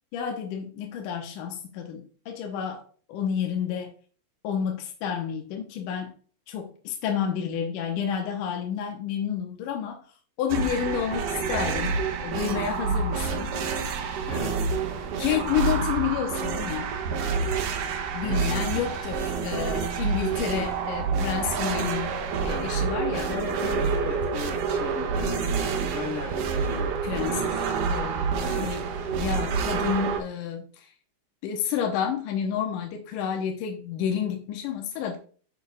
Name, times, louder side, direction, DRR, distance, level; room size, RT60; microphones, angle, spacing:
voice 1, 0.1-2.8 3.1-3.9 4.4-6.1 6.5-10.0 10.4-13.5 15.2-16.9 18.1-23.3 27.0-27.5 27.9-30.9 31.4-35.2, left 8 dB, 80° left, 3 dB, 2.4 m, -30 dB
sound 1, 10.5-30.2, right 5 dB, 75° right, 1.5 m, -28 dB
voice 2, 14.3-14.7 18.2-18.8 23.1-27.8 28.4-28.8, left 2 dB, 50° left, -1 dB, 0.9 m, -37 dB
9.7 x 5.9 x 2.3 m, 0.41 s
omnidirectional pair, 3.8 m